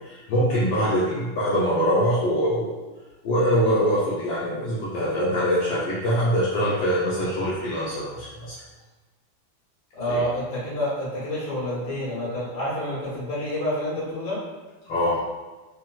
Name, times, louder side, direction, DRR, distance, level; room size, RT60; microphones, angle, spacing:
voice 1, 0.0-2.8 3.2-8.6 10.1-10.2 14.9-15.2, equal, 75° left, -8 dB, 1.3 m, -23 dB
voice 2, 9.9-14.4, equal, 60° left, -9 dB, 1.9 m, -28 dB
4.1 x 2.1 x 2.3 m, 1.2 s
omnidirectional pair, 2.1 m